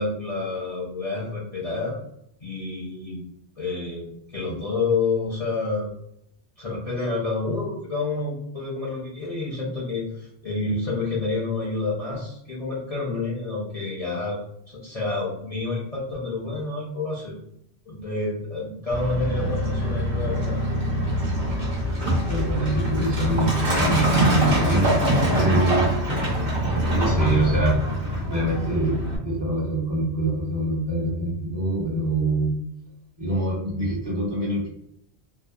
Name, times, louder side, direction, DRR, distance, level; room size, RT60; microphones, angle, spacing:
voice 1, 0.0-2.0 2.4-3.2 3.6-5.9 6.6-14.4 14.7-17.4 17.9-20.6, left 3 dB, 45° left, -7 dB, 0.5 m, -28 dB
Truck, 18.9-29.2, equal, 55° right, 1.0 m, -24 dB
voice 2, 22.3-25.0 25.3-25.9 26.6-27.8 28.3-29.0 29.2-32.5 33.2-34.7, right 2 dB, 25° right, -5 dB, 0.6 m, -25 dB
2.6 x 2.1 x 2.2 m, 0.75 s
omnidirectional pair, 1.2 m